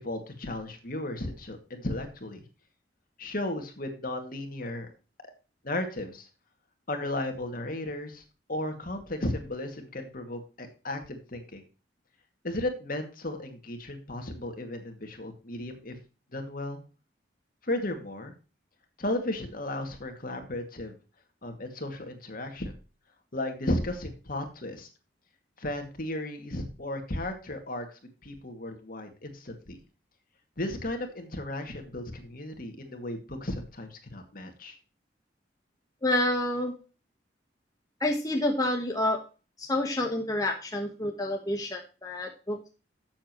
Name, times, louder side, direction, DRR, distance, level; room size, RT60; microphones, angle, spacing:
voice 1, 0.0-2.4 3.2-4.9 5.6-6.3 6.9-8.2 8.5-11.6 12.4-15.9 16.3-16.8 17.6-18.3 19.0-21.0 21.4-22.7 23.3-24.9 25.6-27.9 28.2-29.8 30.6-34.8, left 1 dB, 50° left, 5 dB, 2.3 m, -34 dB
voice 2, 36.0-36.7 38.0-39.2 39.6-42.7, left 1 dB, 20° left, 2 dB, 1.3 m, -28 dB
13.0 x 7.6 x 3.1 m, 0.33 s
head